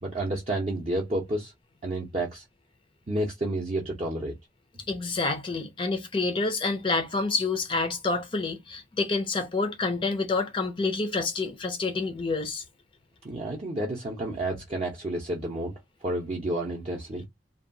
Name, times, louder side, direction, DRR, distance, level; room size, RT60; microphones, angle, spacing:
voice 1, 0.0-1.5 1.8-2.4 3.1-4.3 13.2-15.7 16.0-17.2, right 1 dB, 30° right, 0.5 m, -30 dB
voice 2, 4.9-12.6, left 3 dB, 25° left, 0.4 m, -28 dB
2.7 x 2.2 x 2.6 m
head